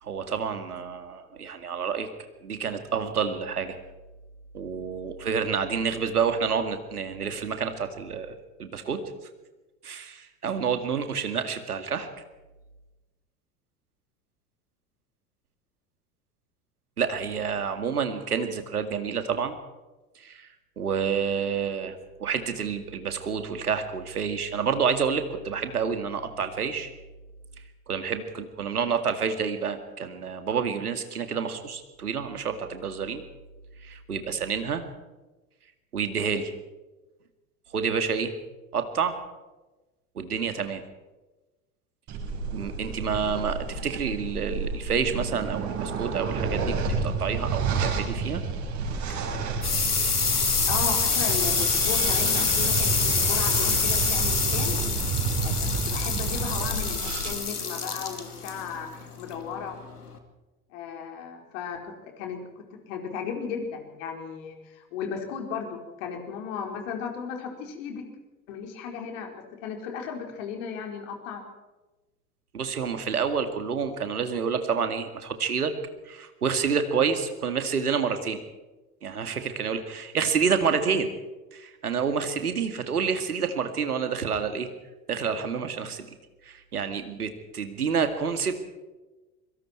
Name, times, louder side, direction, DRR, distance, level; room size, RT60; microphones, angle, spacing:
voice 1, 0.0-2.1 2.4-3.8 4.5-9.0 9.8-12.1 17.0-19.5 20.2-20.5 20.8-26.9 27.9-33.2 33.8-34.8 35.9-36.5 37.7-38.3 38.7-39.2 40.2-40.8 42.5-48.4 72.5-75.7 76.1-78.4 79.0-81.1 81.5-84.7 85.1-86.1 86.4-88.5, right 6 dB, 75° right, 8 dB, 2.2 m, -28 dB
sound 1, 42.1-57.3, right 4 dB, 40° right, 5.4 m, -30 dB
sound 2, 48.9-60.2, left 5 dB, 80° left, 2.3 m, -27 dB
voice 2, 50.6-54.8 55.4-59.8 60.7-68.1 68.5-71.4, left 6 dB, 55° left, 2 dB, 4.7 m, -35 dB
25.0 x 24.0 x 4.6 m, 1.1 s
figure-of-eight pair, 75°, 45 cm